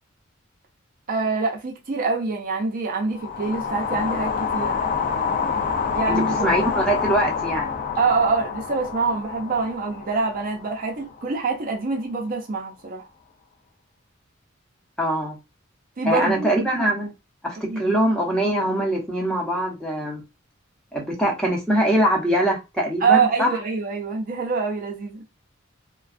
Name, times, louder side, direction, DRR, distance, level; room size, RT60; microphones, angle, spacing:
voice 1, 1.1-4.8 5.9-6.5 8.0-13.1 16.0-16.6 17.7-17.9 23.0-25.2, right 4 dB, 45° right, 0.5 m, -25 dB
sound 1, 3.1-11.4, left 6 dB, 45° left, 0.4 m, -27 dB
voice 2, 6.4-7.7 15.0-15.4 16.0-17.1 17.4-20.2 20.9-23.5, right 1 dB, 5° left, 0.7 m, -23 dB
2.4 x 2.2 x 2.4 m
head